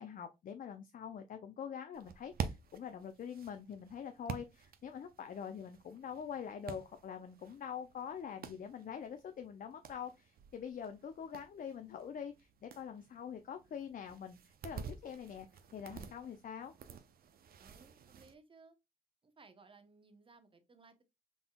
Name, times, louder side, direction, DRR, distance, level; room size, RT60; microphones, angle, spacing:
voice 1, 0.0-15.5 15.7-16.7, left 7 dB, 55° left, 0.5 m, -45 dB
sound 1, 1.9-18.3, right 7 dB, 65° right, 0.6 m, -49 dB
voice 2, 17.6-18.8 19.2-21.0, right 4 dB, 30° right, 0.9 m, -61 dB
4.0 x 3.7 x 2.2 m
cardioid pair, 65°, 17 cm